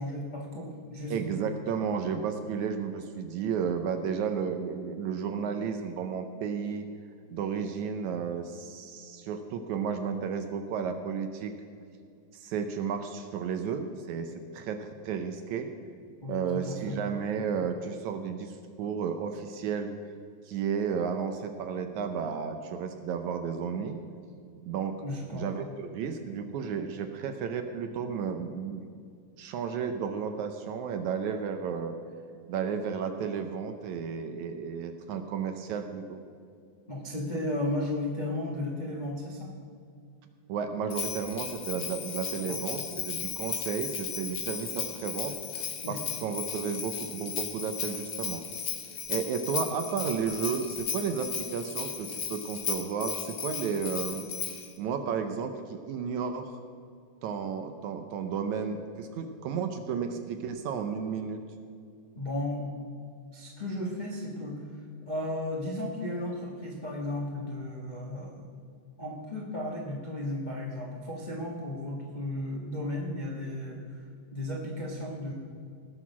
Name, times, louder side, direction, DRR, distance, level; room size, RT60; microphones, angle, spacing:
voice 1, 0.0-1.2 16.2-17.0 25.0-25.7 36.9-39.5 42.5-42.8 45.8-46.0 62.1-62.7 63.3-64.6 65.1-68.4 69.0-74.0 74.3-75.3, left 1 dB, 35° left, -3 dB, 0.6 m, -34 dB
voice 2, 1.1-6.9 7.3-11.5 12.3-15.7 16.3-19.9 20.5-24.0 24.7-24.9 25.3-28.8 29.4-32.0 32.5-36.2 40.5-48.4 49.1-54.3 54.8-56.6 57.2-61.4, right 6 dB, 75° right, 7 dB, 1.9 m, -33 dB
Bell, 40.9-54.7, left 7 dB, 70° left, 1.1 m, -36 dB
18.5 x 6.5 x 6.0 m, 2.3 s
omnidirectional pair, 3.8 m